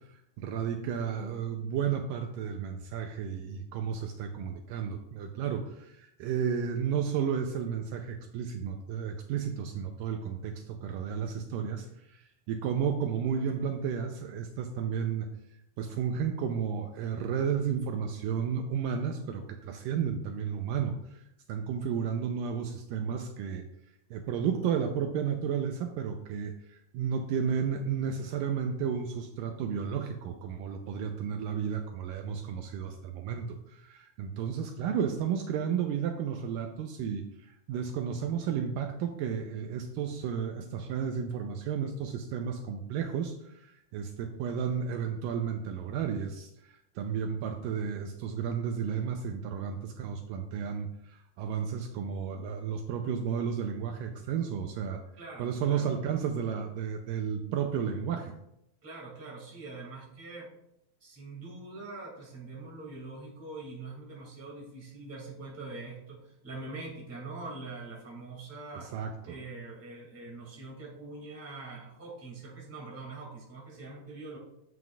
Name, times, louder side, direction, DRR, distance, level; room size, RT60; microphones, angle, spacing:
voice 1, 0.4-15.3 15.8-21.2 21.5-23.6 24.1-55.0 55.4-58.3 68.7-69.4, right 7 dB, 80° right, 4 dB, 2.1 m, -33 dB
voice 2, 55.2-55.9 58.8-60.5 61.0-68.9 69.2-74.4, right 3 dB, 5° right, -3 dB, 1.5 m, -43 dB
11.0 x 7.8 x 2.4 m, 0.79 s
omnidirectional pair, 4.3 m